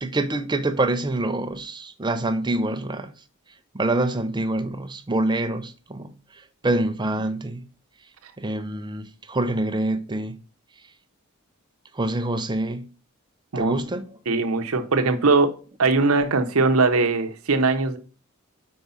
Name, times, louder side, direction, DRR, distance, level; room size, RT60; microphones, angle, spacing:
voice 1, 0.0-3.1 3.7-7.6 8.4-10.4 11.9-12.9 13.6-14.2, right 2 dB, 20° right, 0.6 m, -26 dB
voice 2, 14.3-15.5 15.8-18.0, right 3 dB, 75° right, 0.8 m, -20 dB
5.3 x 4.7 x 5.5 m
head